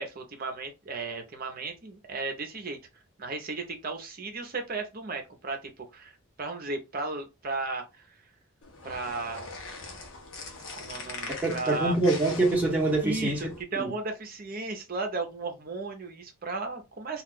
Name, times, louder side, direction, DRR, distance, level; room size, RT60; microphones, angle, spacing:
voice 1, 0.0-2.8 3.2-8.2 8.8-9.6 10.8-11.9 13.0-17.2, right 3 dB, 40° right, 0.7 m, -35 dB
sound 1, 8.6-13.6, left 3 dB, 60° left, 0.8 m, -42 dB
voice 2, 11.4-13.4 13.8-13.9, right 2 dB, 5° right, 1.1 m, -25 dB
2.4 x 2.3 x 3.5 m
head